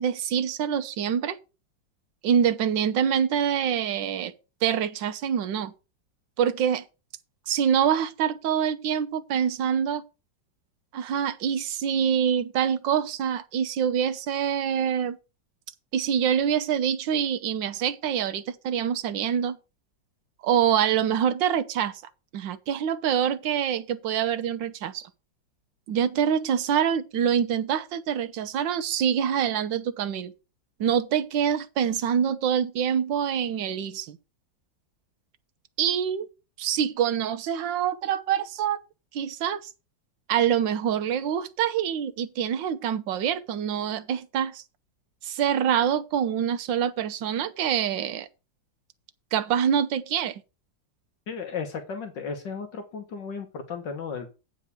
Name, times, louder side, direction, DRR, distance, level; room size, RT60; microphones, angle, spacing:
voice 1, 0.0-1.4 2.2-4.3 4.6-5.7 6.4-6.8 7.5-10.0 10.9-15.2 15.9-19.6 20.4-22.0 22.3-25.1 25.9-30.3 30.8-34.2 35.8-36.3 36.6-38.8 39.1-39.7 40.3-44.6 45.2-48.3 49.3-50.4, right 8 dB, 75° right, 1.6 m, -25 dB
voice 2, 51.3-54.3, left 5 dB, 70° left, 1.8 m, -34 dB
9.0 x 4.7 x 6.8 m
omnidirectional pair, 2.1 m